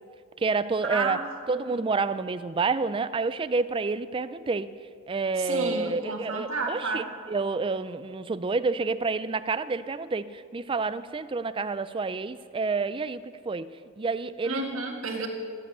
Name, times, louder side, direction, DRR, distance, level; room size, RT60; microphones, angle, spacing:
voice 1, 0.4-1.2 1.5-4.7 5.1-13.7 14.0-14.6, right 4 dB, 25° right, 13 dB, 0.4 m, -29 dB
voice 2, 0.9-1.2 1.7-1.9 5.4-7.1 14.4-15.3, right 3 dB, 65° right, 0 dB, 1.8 m, -31 dB
14.0 x 7.6 x 8.8 m, 2.2 s
head